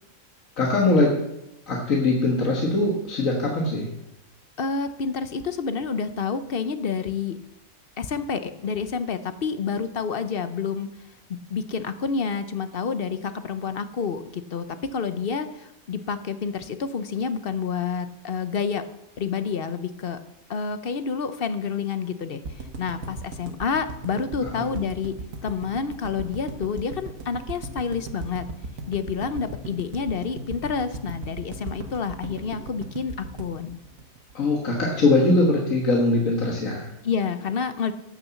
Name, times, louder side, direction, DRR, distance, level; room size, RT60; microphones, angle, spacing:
voice 1, 0.6-1.2 1.7-3.9 24.4-24.8 34.3-36.9, left 2 dB, 70° left, -1 dB, 2.0 m, -22 dB
voice 2, 4.6-7.4 8.0-10.9 11.3-18.9 19.2-20.2 20.5-25.1 25.4-28.5 28.9-33.8 37.0-37.9, left 5 dB, 50° left, 11 dB, 0.9 m, -29 dB
sound 1, 22.4-34.6 34.9-35.0 35.2-35.3, right 3 dB, 75° right, 1.6 m, -37 dB
12.0 x 6.9 x 7.1 m, 0.86 s
omnidirectional pair, 1.5 m